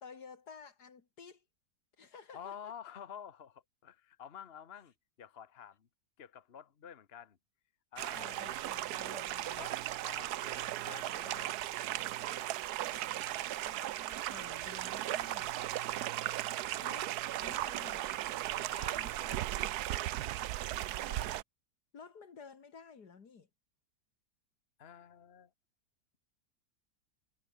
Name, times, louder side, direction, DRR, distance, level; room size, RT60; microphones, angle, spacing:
voice 1, 0.0-1.4 2.0-2.7 8.2-9.6 13.7-15.5 16.8-17.2 17.4-18.1 18.8-19.7 21.0-21.3 21.9-23.5, left 5 dB, 70° left, 2.6 m, -53 dB
voice 2, 2.3-4.9 5.2-5.9 6.2-7.4 7.9-8.3 9.6-9.8 10.0-11.6 13.8-13.9 14.3-14.5 18.5-19.3 24.8-25.5, left 8 dB, 40° left, 1.2 m, -50 dB
sound 1, 8.0-21.4, right 14 dB, 70° right, 1.1 m, -37 dB
omnidirectional pair, 1.8 m